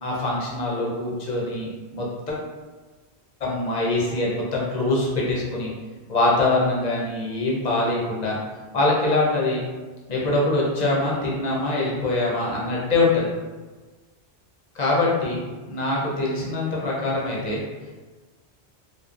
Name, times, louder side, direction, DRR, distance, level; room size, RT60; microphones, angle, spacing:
voice 1, 0.0-2.4 3.4-5.7 6.1-8.4 8.7-9.6 10.1-13.3 14.7-17.6, left 2 dB, 50° left, -4 dB, 0.5 m, -23 dB
3.0 x 2.0 x 2.4 m, 1.3 s
omnidirectional pair, 1.2 m